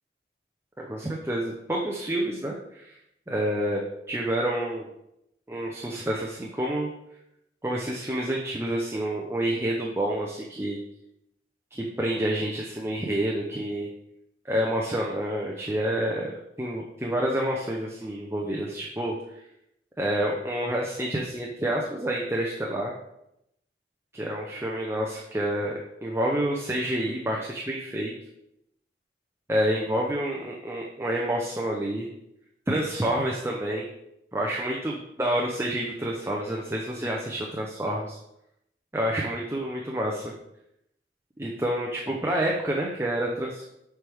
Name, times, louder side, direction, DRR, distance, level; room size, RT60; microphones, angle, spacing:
voice 1, 0.8-2.9 3.3-3.8 4.1-4.9 5.5-6.9 7.6-10.8 11.7-13.9 14.5-19.1 20.0-22.9 24.1-28.1 29.5-32.1 32.7-33.9 34.3-38.2 38.9-40.3 41.4-43.6, right 1 dB, 15° right, -2 dB, 0.6 m, -28 dB
7.9 x 4.7 x 3.4 m, 0.80 s
head